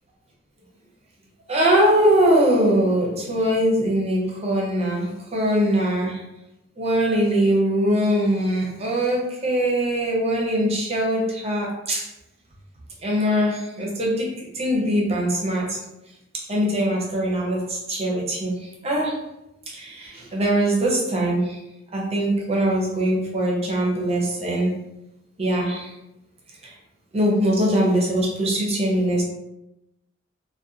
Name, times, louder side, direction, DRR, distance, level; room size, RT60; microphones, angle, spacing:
voice 1, 1.5-6.2 6.8-12.1 13.0-15.8 16.3-19.2 19.7-21.6 21.9-24.8 25.4-25.9 26.6-26.7 27.1-29.2, right 1 dB, 30° right, -3 dB, 0.6 m, -22 dB
2.4 x 2.2 x 2.7 m, 0.90 s
head